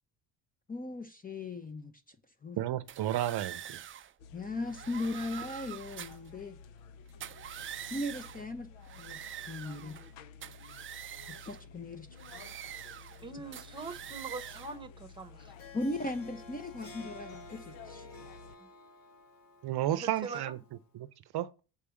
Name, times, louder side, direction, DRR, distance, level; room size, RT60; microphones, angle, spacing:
voice 1, 0.7-2.2 2.4-2.6 4.3-6.6 7.9-8.7 9.0-10.0 11.3-12.1 15.7-18.1, left 2 dB, 20° left, 0.7 m, -38 dB
voice 2, 2.6-3.8 19.6-20.6 20.9-21.1 21.3-21.5, right 12 dB, 60° right, 0.7 m, -32 dB
sound 1, 2.9-4.1 4.6-6.3 7.1-8.5 8.8-10.1 10.4-11.6 12.2-13.2 13.5-14.8, right 10 dB, 30° right, 0.4 m, -45 dB
sound 2, 4.2-18.6, left 5 dB, 85° left, 0.8 m, -52 dB
voice 3, 13.2-15.5 18.6-18.7 19.9-20.5, right 4 dB, 10° right, 1.1 m, -43 dB
Harp, 15.4-20.9, left 2 dB, 70° left, 2.1 m, -52 dB
7.0 x 4.9 x 7.0 m
cardioid pair, 110°, 44 cm